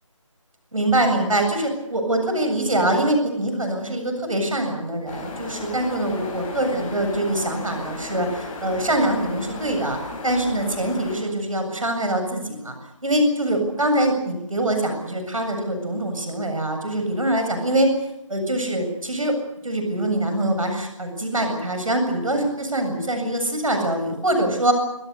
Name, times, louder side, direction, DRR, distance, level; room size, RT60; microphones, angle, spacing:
voice 1, 0.7-10.0 10.2-12.8 13.0-17.9 18.3-19.4 19.6-24.7, right 1 dB, 80° right, 5 dB, 7.7 m, -23 dB
sound 1, 5.1-11.2, left 2 dB, 15° left, 6.6 m, -35 dB
27.0 x 22.0 x 6.9 m, 0.92 s
figure-of-eight pair, 165°, 17 cm